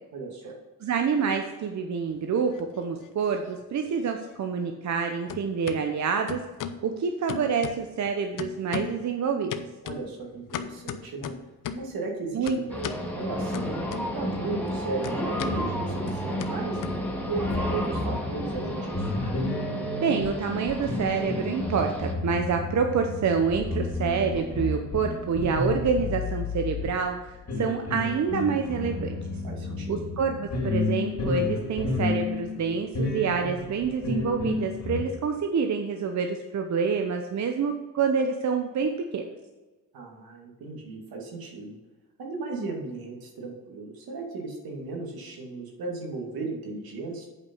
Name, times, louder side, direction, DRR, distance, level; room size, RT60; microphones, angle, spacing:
voice 1, 0.1-0.6 9.8-11.3 11.7-16.8 17.3-19.1 29.4-30.1 39.9-41.8 42.2-47.3, right 3 dB, 75° right, 0 dB, 2.4 m, -35 dB
voice 2, 0.8-6.4 6.8-9.5 12.3-12.8 20.0-29.2 29.9-39.2, right 5 dB, 50° right, 4 dB, 0.8 m, -27 dB
sound 1, 2.2-3.1 3.4-5.0 5.3-5.8 6.3-6.8 7.3-8.1 8.4-9.1 9.5-11.9 12.5-13.1 13.5-14.4 14.6-17.5, left 8 dB, 60° left, 0.7 m, -37 dB
sound 2, 12.7-22.1, equal, 5° left, 2.0 m, -32 dB
sound 3, 15.3-35.1, left 3 dB, 40° left, 2.8 m, -32 dB
8.5 x 5.3 x 5.5 m, 1.2 s
cardioid pair, 90°, 36 cm